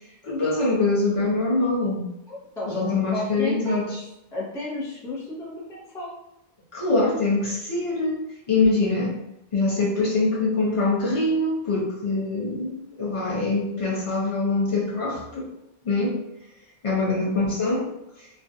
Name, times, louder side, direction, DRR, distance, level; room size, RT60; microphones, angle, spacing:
voice 1, 0.2-2.1 2.7-4.0 6.7-9.2 9.5-15.5 15.8-16.2 16.8-17.9, left 2 dB, 35° left, -5 dB, 0.7 m, -24 dB
voice 2, 2.3-3.8 4.3-6.1 17.0-17.3, left 2 dB, 5° left, -6 dB, 0.4 m, -32 dB
2.5 x 2.2 x 2.6 m, 0.85 s
omnidirectional pair, 1.1 m